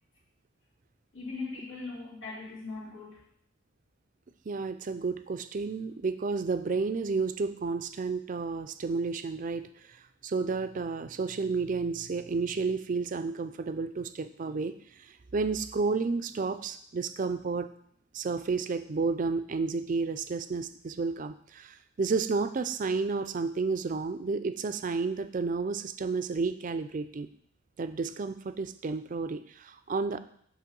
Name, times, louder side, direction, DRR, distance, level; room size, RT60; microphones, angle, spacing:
voice 1, 1.1-3.2, left 3 dB, 80° left, -5 dB, 2.4 m, -39 dB
voice 2, 4.5-17.7 18.1-27.3 27.8-30.2, right 4 dB, 40° right, 11 dB, 0.4 m, -31 dB
8.4 x 3.1 x 5.3 m, 0.65 s
head